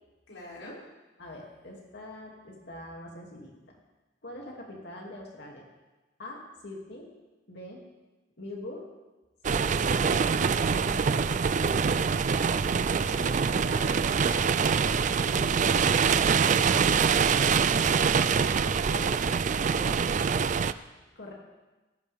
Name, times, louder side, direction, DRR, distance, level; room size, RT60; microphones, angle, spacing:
voice 1, 0.3-0.8 13.1-20.0, equal, 85° left, -6 dB, 6.3 m, -43 dB
voice 2, 1.2-3.5 4.2-5.6 6.2-7.1 7.5-7.8 8.4-8.8 9.5-11.2 11.5-12.2 21.2-21.3, left 1 dB, 60° left, -1 dB, 2.7 m, -43 dB
sound 1, 9.4-20.7, right 6 dB, 40° right, 0.4 m, -24 dB
19.0 x 16.5 x 3.6 m, 1.1 s
head